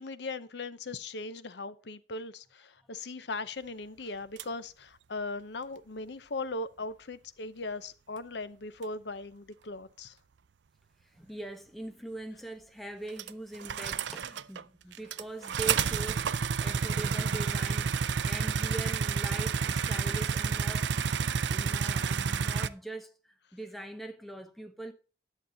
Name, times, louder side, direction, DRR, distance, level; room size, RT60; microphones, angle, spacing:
voice 1, 0.0-10.2, left 3 dB, 70° left, 0.7 m, -39 dB
sound 1, 4.4-4.5 8.8-8.9 13.2-14.6 14.9-22.7, right 6 dB, 75° right, 0.5 m, -30 dB
voice 2, 11.0-21.1 21.4-24.9, right 1 dB, ahead, 0.9 m, -42 dB
11.0 x 7.3 x 3.9 m
head